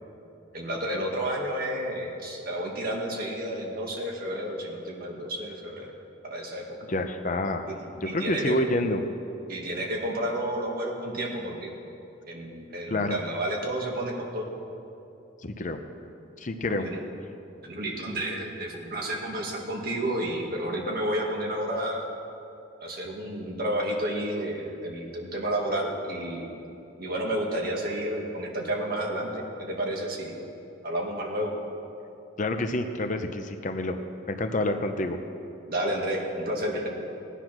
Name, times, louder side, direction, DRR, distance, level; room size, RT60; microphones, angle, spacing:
voice 1, 0.5-5.9 6.2-6.6 7.7-7.8 8.0-8.6 9.5-11.7 12.3-14.4 16.7-17.0 17.6-22.1 22.8-26.5 27.0-30.4 30.8-31.5 35.7-36.9, right 1 dB, 50° right, -1 dB, 2.2 m, -31 dB
voice 2, 6.9-7.7 8.0-9.0 12.9-13.2 15.4-15.8 16.4-16.9 32.4-34.0 34.3-35.2, left 1 dB, 40° left, 7 dB, 0.7 m, -28 dB
17.0 x 10.0 x 6.1 m, 2.7 s
head